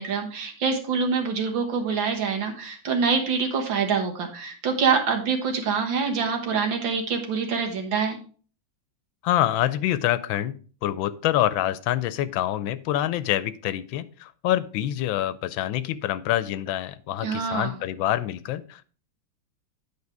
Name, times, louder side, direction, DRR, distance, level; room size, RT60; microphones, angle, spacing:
voice 1, 0.0-8.2 17.2-17.7, right 5 dB, 75° right, 4 dB, 2.1 m, -25 dB
voice 2, 9.2-10.6 10.8-18.8, left 13 dB, 85° left, 15 dB, 1.3 m, -26 dB
9.4 x 4.8 x 4.7 m, 0.40 s
omnidirectional pair, 2.1 m